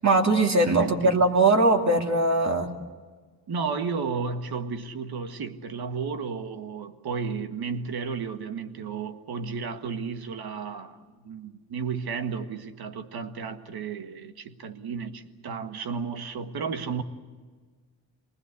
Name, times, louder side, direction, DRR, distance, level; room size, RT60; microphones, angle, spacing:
voice 1, 0.0-2.7, right 2 dB, 45° right, 2 dB, 2.9 m, -21 dB
voice 2, 0.8-1.2 3.5-17.0, right 5 dB, 70° right, 8 dB, 1.7 m, -33 dB
25.5 x 20.0 x 8.3 m, 1.5 s
cardioid pair, 75°, 38 cm